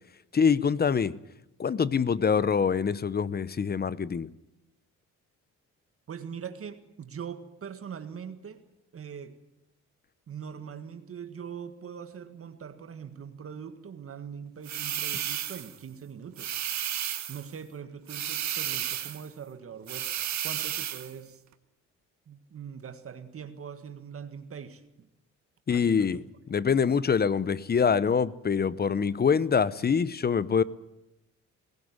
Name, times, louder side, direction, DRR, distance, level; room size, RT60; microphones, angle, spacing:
voice 1, 0.3-1.2 1.6-4.3 25.7-26.2 26.5-30.6, left 6 dB, 30° left, 0.8 m, -25 dB
voice 2, 6.1-8.6 8.9-9.4 10.3-16.6 17.3-20.1 20.4-21.4 22.3-25.1 25.7-26.3, right 7 dB, 50° right, 1.7 m, -42 dB
sound 1, 14.6-15.8 16.4-17.5 18.1-19.3 19.9-21.1, right 11 dB, 65° right, 1.6 m, -32 dB
19.0 x 16.5 x 9.6 m
cardioid pair, 90°, 30 cm